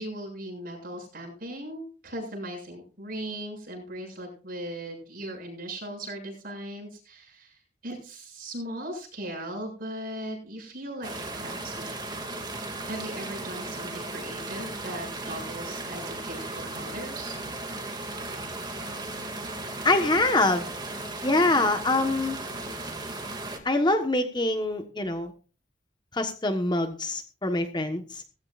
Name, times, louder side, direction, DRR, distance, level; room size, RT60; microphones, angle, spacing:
voice 1, 0.0-12.0 12.9-17.3, right 1 dB, 45° right, 2 dB, 7.3 m, -38 dB
sound 1, 11.0-23.6, right 2 dB, 20° right, 2.4 m, -36 dB
voice 2, 19.8-20.7 21.2-22.4 23.6-25.3 26.1-28.2, left 2 dB, 20° left, 6 dB, 1.3 m, -24 dB
17.5 x 16.0 x 2.5 m, 0.36 s
head